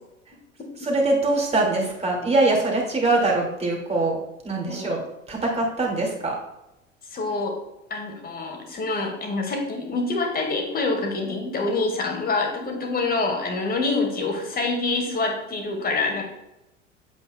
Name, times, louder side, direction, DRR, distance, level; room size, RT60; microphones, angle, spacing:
voice 1, 0.8-4.2 4.4-6.4, right 2 dB, 15° right, -1 dB, 2.4 m, -23 dB
voice 2, 7.1-7.5 7.9-16.2, left 3 dB, 25° left, 2 dB, 2.1 m, -26 dB
8.5 x 8.0 x 2.3 m, 0.90 s
figure-of-eight pair, 80°, 38 cm